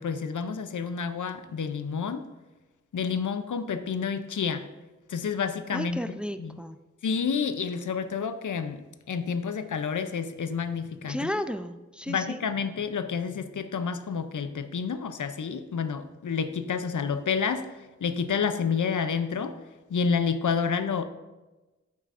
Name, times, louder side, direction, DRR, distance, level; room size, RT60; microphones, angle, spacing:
voice 1, 0.0-2.3 2.9-4.7 5.1-6.0 6.4-6.6 7.0-11.3 12.1-17.7 18.0-19.6 19.9-21.0, left 6 dB, 90° left, 10 dB, 0.5 m, -29 dB
voice 2, 5.7-6.8 11.1-12.4, equal, 5° right, 10 dB, 0.4 m, -33 dB
8.5 x 7.5 x 2.5 m, 1.1 s
wide cardioid pair, 45°, 30 cm